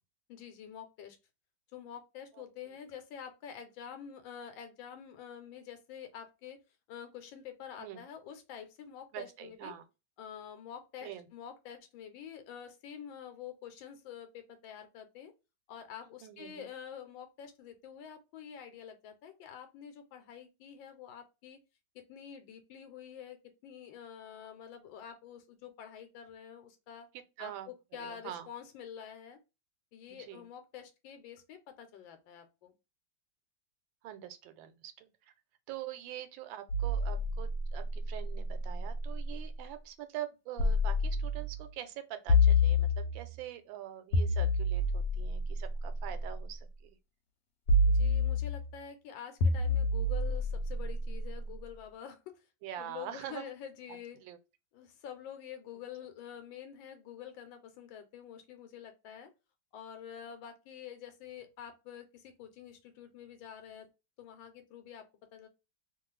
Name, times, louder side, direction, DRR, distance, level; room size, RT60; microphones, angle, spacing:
voice 1, 0.3-1.2 1.7-6.6 6.9-9.7 10.2-15.3 15.7-21.6 21.9-23.4 23.6-27.1 27.4-29.4 29.9-32.7 47.9-52.4 52.8-54.2 54.7-59.3 59.7-63.9 64.2-65.1 65.3-65.5, left 8 dB, 90° left, 1.3 m, -47 dB
voice 2, 9.1-9.8 11.0-11.3 16.2-16.7 27.4-28.5 30.1-30.5 34.0-35.3 35.7-46.9 52.6-53.5 53.9-54.4, right 12 dB, 85° right, 1.3 m, -44 dB
sound 1, 36.7-39.5 40.6-41.6 42.3-43.4 44.1-46.4 47.7-48.8 49.4-51.6, left 2 dB, 70° left, 1.2 m, -29 dB
2.9 x 2.3 x 3.1 m
omnidirectional pair, 2.0 m